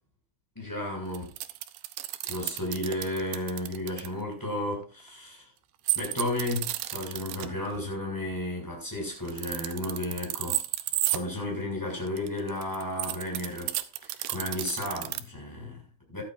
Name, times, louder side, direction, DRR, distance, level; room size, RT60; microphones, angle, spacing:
voice 1, 0.5-1.3 2.2-5.4 5.9-10.6 11.1-16.2, left 1 dB, 5° left, 6.7 m, -33 dB
sound 1, 1.1-4.1 5.9-7.5 9.2-11.2 12.1-15.2, right 15 dB, 80° right, 2.3 m, -32 dB
16.5 x 12.5 x 2.6 m
omnidirectional pair, 5.5 m